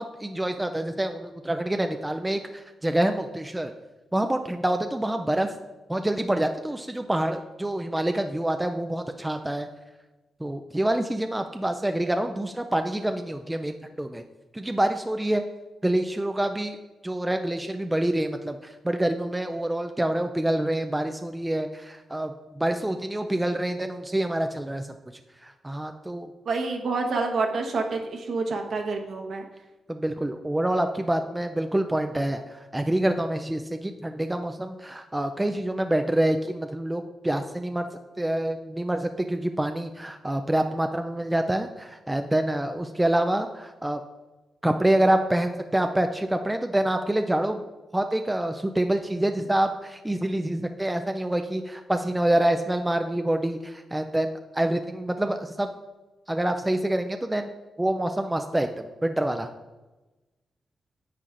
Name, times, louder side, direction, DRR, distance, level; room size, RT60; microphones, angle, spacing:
voice 1, 0.0-3.7 4.1-5.5 5.9-9.7 10.4-14.2 14.5-15.4 15.8-16.8 17.0-24.9 25.4-26.3 29.9-37.9 38.2-44.0 44.6-47.6 47.9-55.7 56.3-59.5, right 1 dB, 10° right, 6 dB, 0.3 m, -26 dB
voice 2, 26.4-29.4, right 3 dB, 55° right, 2 dB, 1.0 m, -28 dB
9.7 x 8.2 x 2.5 m, 1.1 s
wide cardioid pair, 165°, 0 cm